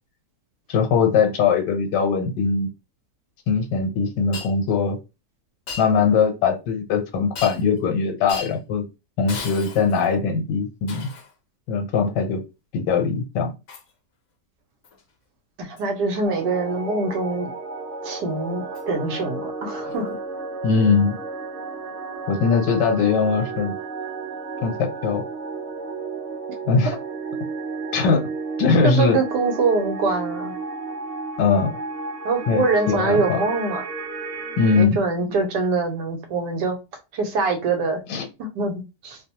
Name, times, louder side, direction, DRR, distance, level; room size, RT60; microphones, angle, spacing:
voice 1, 0.7-2.7 3.5-5.0 5.8-8.8 9.2-11.1 11.7-12.4 12.7-13.5 20.6-21.2 22.3-23.7 24.6-25.2 26.7-26.9 27.9-28.2 28.6-29.2 31.4-31.7 32.5-33.4 34.6-35.0 38.1-38.3, left 5 dB, 80° left, 1.3 m, -21 dB
Shatter, 4.3-4.5 5.7-5.9 7.3-7.8 8.3-8.6 9.3-10.1 10.9-11.3 13.7-13.9 14.8-15.0 15.8-15.9 18.7-18.8 19.9-20.0, left 5 dB, 60° left, 0.8 m, -36 dB
voice 2, 15.6-17.5 18.0-20.1 28.8-30.6 32.2-33.8 34.8-36.8 37.1-38.0 38.4-39.2, right 3 dB, 75° right, 1.2 m, -24 dB
sound 1, 16.2-34.9, right 4 dB, 55° right, 0.7 m, -33 dB
3.0 x 2.0 x 2.8 m
omnidirectional pair, 1.9 m